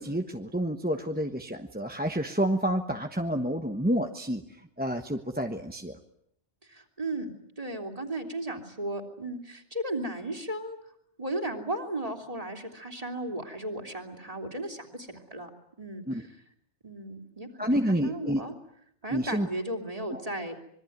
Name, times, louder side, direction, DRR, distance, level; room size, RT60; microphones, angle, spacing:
voice 1, 0.0-4.4 4.8-5.9 16.1-16.2 17.6-18.4 19.1-19.5 20.1-20.2, equal, 10° right, 5 dB, 1.2 m, -29 dB
voice 2, 6.7-10.8 11.2-15.5 15.8-16.3 16.8-18.5 19.0-20.7, right 1 dB, 30° right, 4 dB, 3.4 m, -35 dB
26.0 x 22.0 x 9.4 m, 0.71 s
omnidirectional pair, 1.2 m